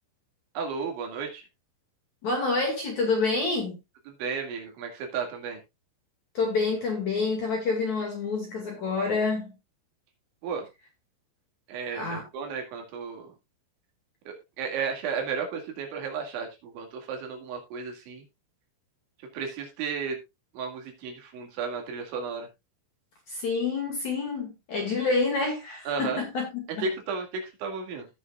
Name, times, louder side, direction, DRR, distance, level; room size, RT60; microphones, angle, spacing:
voice 1, 0.6-1.4 4.2-5.6 10.4-10.7 11.7-13.3 14.6-18.2 19.3-20.2 20.6-22.5 25.9-26.2 26.8-28.1, right 5 dB, 70° right, 4.5 m, -33 dB
voice 2, 2.2-3.8 6.3-9.5 11.9-12.2 23.3-26.9, left 3 dB, 50° left, 2.7 m, -28 dB
17.0 x 6.5 x 2.4 m
omnidirectional pair, 5.8 m